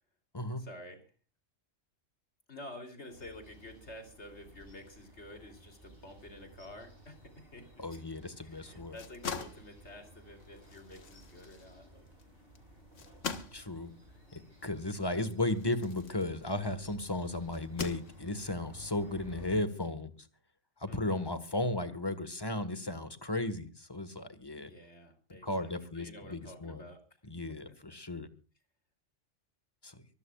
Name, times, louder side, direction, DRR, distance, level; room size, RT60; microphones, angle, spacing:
voice 1, 0.6-1.0 2.5-8.0 8.4-12.1 20.9-21.4 24.6-27.0, left 1 dB, 65° left, 6 dB, 3.5 m, -50 dB
sound 1, 3.1-19.6, right 1 dB, 50° right, 7.6 m, -56 dB
voice 2, 7.8-9.0 13.5-13.9 14.3-20.1 20.8-24.7 25.4-26.8 27.2-28.3 29.8-30.0, left 2 dB, 20° left, 11 dB, 1.5 m, -35 dB
sound 2, 8.8-16.9 17.5-18.6, left 5 dB, 85° left, 1.8 m, -44 dB
24.5 x 15.5 x 2.4 m, 0.36 s
omnidirectional pair, 1.2 m